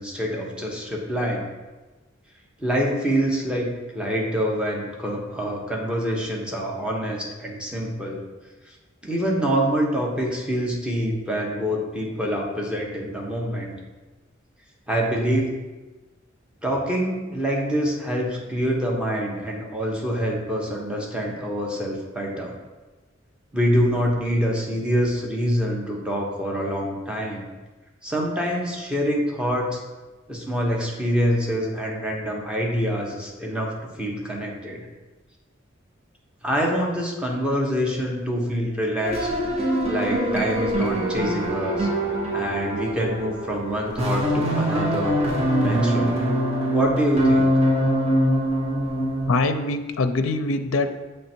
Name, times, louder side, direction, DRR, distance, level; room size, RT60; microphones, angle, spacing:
voice 1, 0.0-1.4 2.6-8.2 9.0-13.7 14.9-15.5 16.6-22.5 23.5-27.4 28.0-29.8 30.3-34.8 36.4-39.3 39.9-41.9 42.3-45.2 45.6-46.2 46.7-47.5, equal, 5° right, -2 dB, 1.0 m, -25 dB
sound 1, 39.0-49.3, equal, 30° right, 1.1 m, -23 dB
voice 2, 49.3-50.9, left 3 dB, 75° left, 8 dB, 0.5 m, -23 dB
7.5 x 3.2 x 4.4 m, 1.2 s
head